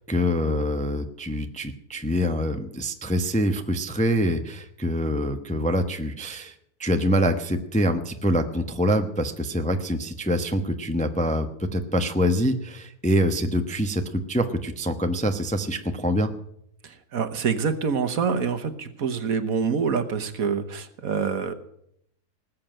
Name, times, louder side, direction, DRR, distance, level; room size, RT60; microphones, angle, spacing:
voice 1, 0.1-6.5 6.8-14.0 14.3-16.3, equal, 5° left, 7 dB, 0.7 m, -25 dB
voice 2, 16.8-21.5, right 6 dB, 60° right, 10 dB, 1.5 m, -26 dB
19.5 x 7.7 x 9.0 m, 0.73 s
omnidirectional pair, 1.7 m